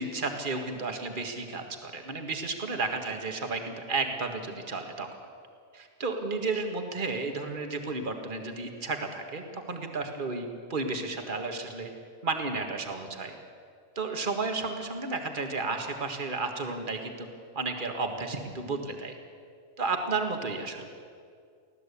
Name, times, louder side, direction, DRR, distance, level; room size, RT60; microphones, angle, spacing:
voice 1, 0.0-5.1 5.7-11.9 12.2-13.3 14.0-17.3 17.6-19.2 19.8-20.9, right 3 dB, 35° right, 4 dB, 2.0 m, -32 dB
24.5 x 16.0 x 8.6 m, 2.2 s
omnidirectional pair, 1.5 m